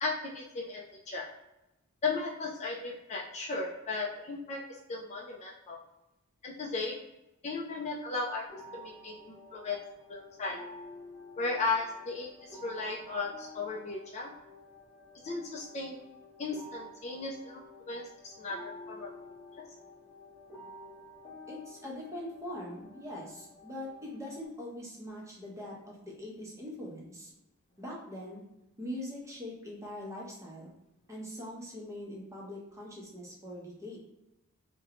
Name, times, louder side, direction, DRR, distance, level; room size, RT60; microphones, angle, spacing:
voice 1, 0.0-1.3 2.0-4.6 4.9-5.8 6.4-7.0 7.4-8.5 8.7-9.8 10.1-10.6 11.4-14.3 15.2-16.0 16.4-17.6 17.9-19.1, left 3 dB, 30° left, -1 dB, 0.3 m, -35 dB
sound 1, 8.5-24.5, left 1 dB, 15° left, 0.8 m, -51 dB
voice 2, 21.5-27.3 27.8-28.4 28.8-30.7 31.1-34.0, left 1 dB, 15° right, -3 dB, 0.6 m, -42 dB
2.6 x 2.1 x 2.8 m, 0.92 s
head